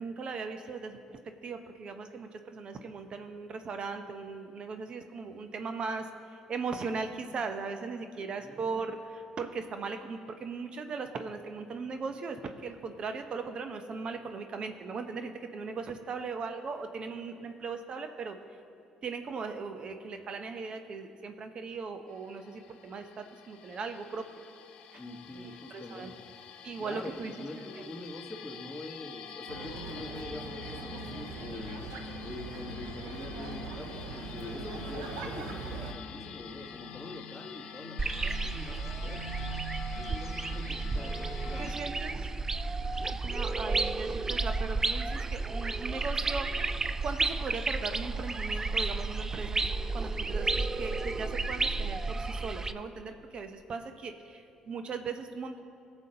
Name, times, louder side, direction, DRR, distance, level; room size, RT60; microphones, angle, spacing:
voice 1, 0.0-18.4 19.0-24.2 24.9-25.0 25.3-26.1 26.6-27.3 41.5-42.3 43.1-46.5 47.0-49.6 49.9-55.6, right 4 dB, 50° right, 7 dB, 0.8 m, -38 dB
voice 2, 8.2-8.6 24.9-26.2 26.8-31.9 32.2-39.4 39.9-41.7, left 2 dB, 15° left, 1 dB, 1.4 m, -44 dB
sound 1, 22.1-41.7, left 4 dB, 75° left, 0.6 m, -46 dB
sound 2, 29.5-35.9, right 4 dB, 85° right, 0.8 m, -41 dB
sound 3, 38.0-52.7, right 3 dB, 25° right, 0.4 m, -32 dB
18.0 x 7.0 x 2.9 m, 2.5 s
supercardioid pair, 65°, 2 cm